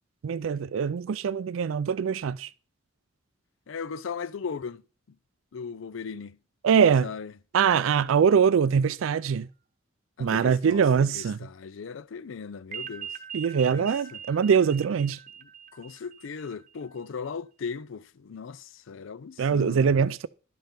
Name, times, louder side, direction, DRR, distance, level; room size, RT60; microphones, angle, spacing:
voice 1, 0.2-2.5 6.6-7.1 7.5-9.5 10.2-11.4 13.3-15.2 19.4-20.3, right 6 dB, 90° right, 0.4 m, -23 dB
voice 2, 3.7-4.8 5.5-6.4 7.0-7.3 10.2-13.2 13.7-14.2 15.4-19.9, left 5 dB, 75° left, 0.5 m, -38 dB
sound 1, 12.7-16.8, right 8 dB, 40° right, 0.8 m, -41 dB
12.0 x 5.3 x 5.7 m
head